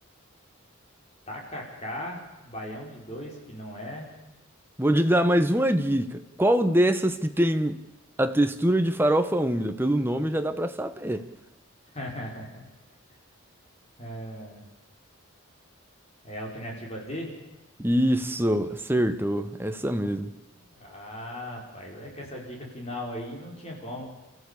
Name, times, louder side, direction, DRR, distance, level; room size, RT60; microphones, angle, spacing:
voice 1, 1.3-4.1 11.9-12.7 14.0-14.6 16.2-17.3 20.6-24.0, equal, 30° left, 5.2 m, -38 dB
voice 2, 4.8-7.8 8.2-11.3 17.8-20.3, right 1 dB, 10° right, 0.9 m, -24 dB
29.5 x 14.5 x 8.4 m
head